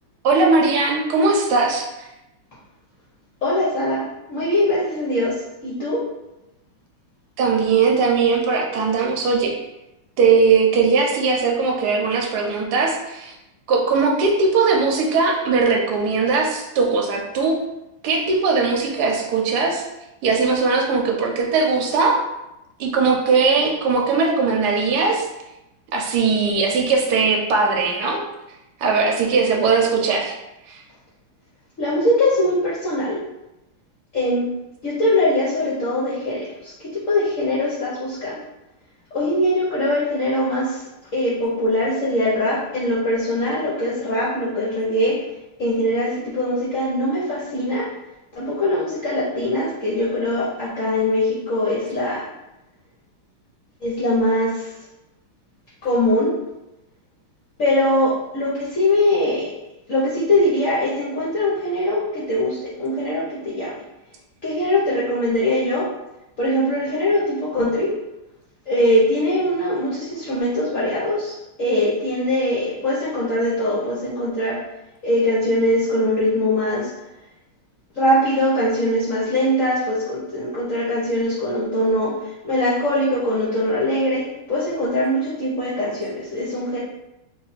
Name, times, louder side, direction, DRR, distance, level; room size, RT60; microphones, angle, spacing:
voice 1, 0.2-2.1 7.4-9.5 10.2-13.3 13.7-17.6 18.0-19.8 20.2-22.2 22.8-25.3 25.9-28.2 28.8-30.4 30.7-30.8, right 4 dB, 65° right, 0 dB, 1.1 m, -19 dB
voice 2, 3.4-6.0 31.8-33.2 34.1-34.5 34.8-38.4 39.1-45.3 45.6-47.9 48.3-52.3 53.8-54.8 55.8-56.4 57.6-59.5 59.9-63.8 64.4-65.9 66.4-67.9 68.7-74.6 75.0-76.9 77.9-86.8, left 1 dB, 60° left, -7 dB, 0.8 m, -22 dB
3.1 x 2.7 x 4.0 m, 0.94 s
omnidirectional pair, 2.3 m